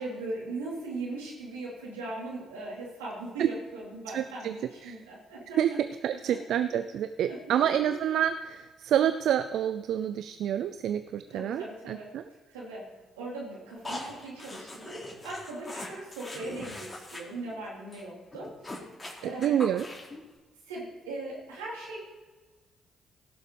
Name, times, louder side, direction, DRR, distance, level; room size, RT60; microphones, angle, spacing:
voice 1, 0.0-5.8 7.3-7.7 11.3-12.1 12.5-12.9 13.2-18.5 19.2-19.6 20.7-22.0, right 2 dB, 90° right, -5 dB, 3.9 m, -39 dB
voice 2, 4.1-4.5 4.8-5.0 5.6-5.7 6.0-12.2 19.2-19.9, right 10 dB, 65° right, 11 dB, 0.4 m, -28 dB
sound 1, 13.8-17.2 17.5-17.6 17.9-18.0 18.3-20.2, left 1 dB, 30° left, 3.9 m, -41 dB
17.5 x 6.5 x 5.2 m, 1.3 s
hypercardioid pair, 45°, 0 cm